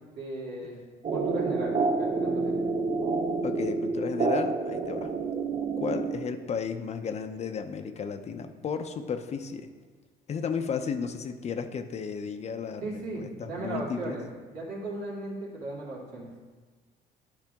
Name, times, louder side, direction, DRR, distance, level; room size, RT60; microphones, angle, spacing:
voice 1, 0.1-0.8 1.1-2.6 12.8-14.2 14.5-16.3, right 2 dB, 80° right, -5 dB, 2.6 m, -36 dB
sound 1, 1.0-6.6, right 4 dB, 35° right, 0.8 m, -28 dB
voice 2, 3.4-5.1 5.8-9.7 10.3-14.2, left 6 dB, 40° left, 8 dB, 0.6 m, -34 dB
12.0 x 4.9 x 3.5 m, 1.4 s
cardioid pair, 110°, 17 cm